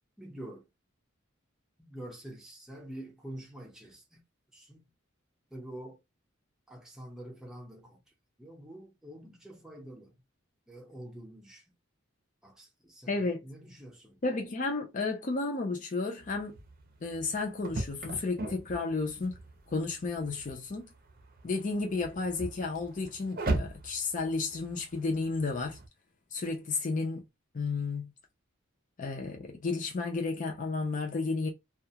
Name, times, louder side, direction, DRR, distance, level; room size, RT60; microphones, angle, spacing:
voice 1, 0.2-0.7 1.8-4.2 4.5-4.9 5.5-6.0 6.7-8.0 8.4-10.2 10.7-11.6 12.4-14.2, right 1 dB, 5° right, 0.7 m, -46 dB
voice 2, 13.1-13.4 14.2-16.5 17.0-19.4 19.7-20.9 21.4-25.8 26.3-27.2 27.5-28.1 29.0-31.5, left 3 dB, 40° left, 0.5 m, -32 dB
sound 1, 16.2-25.9, right 2 dB, 45° right, 0.6 m, -39 dB
2.3 x 2.1 x 2.7 m
head